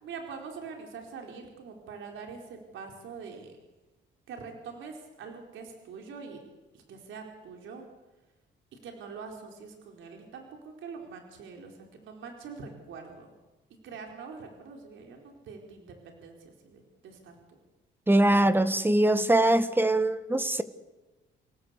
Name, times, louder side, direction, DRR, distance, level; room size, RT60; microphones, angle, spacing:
voice 1, 0.0-3.5 4.3-6.4 6.7-7.9 8.7-13.3 13.8-17.3, right 5 dB, 75° right, 2 dB, 4.5 m, -44 dB
voice 2, 18.1-20.6, right 1 dB, 10° right, 11 dB, 1.8 m, -22 dB
28.5 x 17.5 x 8.3 m, 1.1 s
cardioid pair, 90°, 20 cm